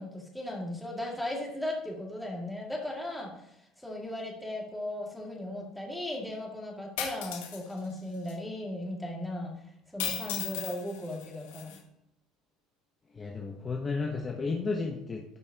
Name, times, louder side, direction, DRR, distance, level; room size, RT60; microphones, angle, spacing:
voice 1, 0.0-3.3 3.8-9.5 9.9-11.8, left 1 dB, ahead, -2 dB, 2.3 m, -37 dB
sound 1, 7.0-7.6 8.3-8.4 10.0-11.8, left 10 dB, 85° left, 1.2 m, -36 dB
voice 2, 13.1-15.4, left 4 dB, 25° left, 1 dB, 1.0 m, -33 dB
12.5 x 5.4 x 2.9 m, 0.77 s
supercardioid pair, 100°, 0 cm